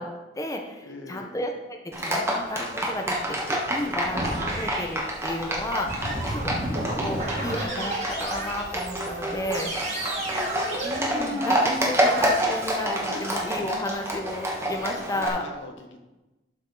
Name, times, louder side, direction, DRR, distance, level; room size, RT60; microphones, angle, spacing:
voice 1, 0.0-9.7 10.8-15.5, left 1 dB, 20° left, 3 dB, 0.7 m, -33 dB
voice 2, 0.8-1.3 3.7-4.0 6.0-6.4 9.6-10.6 13.1-13.3 15.3-16.0, left 2 dB, 75° left, 4 dB, 1.1 m, -42 dB
Livestock farm animals working animals, 1.9-15.3, equal, 15° right, 1.4 m, -28 dB
sound 1, 4.1-4.9 5.9-12.7, right 1 dB, 40° right, 2.0 m, -32 dB
12.0 x 5.3 x 3.9 m, 1.1 s
head